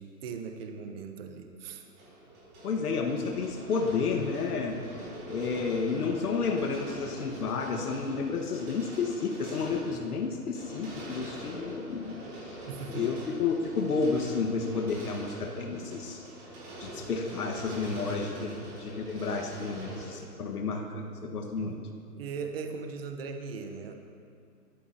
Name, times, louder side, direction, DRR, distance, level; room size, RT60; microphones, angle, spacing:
voice 1, 0.0-1.9 12.7-13.1 18.4-18.7 21.6-21.8 22.2-23.9, right 5 dB, 40° right, 5 dB, 1.0 m, -39 dB
sound 1, 1.8-20.1, right 1 dB, 20° right, 3.7 m, -44 dB
voice 2, 2.6-4.8 5.3-12.6 12.9-16.2 16.8-21.8, left 4 dB, 70° left, 2 dB, 1.6 m, -31 dB
22.0 x 14.5 x 2.8 m, 2.3 s
hypercardioid pair, 155°, 47 cm